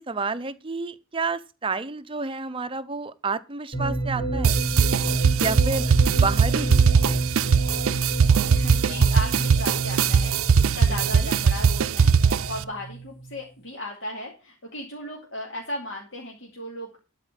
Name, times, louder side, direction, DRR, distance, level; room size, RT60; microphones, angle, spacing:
voice 1, 0.0-4.6 5.4-7.2 10.9-11.3, right 4 dB, 25° right, 0.6 m, -30 dB
sound 1, 3.7-13.4, right 3 dB, 25° left, 3.7 m, -29 dB
sound 2, 4.4-12.6, right 6 dB, 85° right, 0.5 m, -20 dB
voice 2, 8.5-17.0, left 1 dB, 60° left, 2.6 m, -36 dB
12.5 x 4.9 x 7.4 m
head